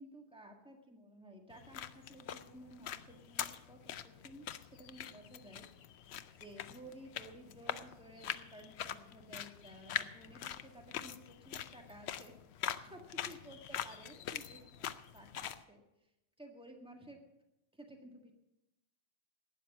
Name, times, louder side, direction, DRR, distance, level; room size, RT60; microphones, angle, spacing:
voice 1, 0.0-5.7 6.4-12.3 12.6-15.8 16.4-17.2 17.7-18.3, right 1 dB, 5° right, 3 dB, 1.7 m, -54 dB
sound 1, 1.5-15.6, left 10 dB, 75° left, 0.9 m, -44 dB
12.0 x 9.1 x 7.2 m, 0.91 s
omnidirectional pair, 1.1 m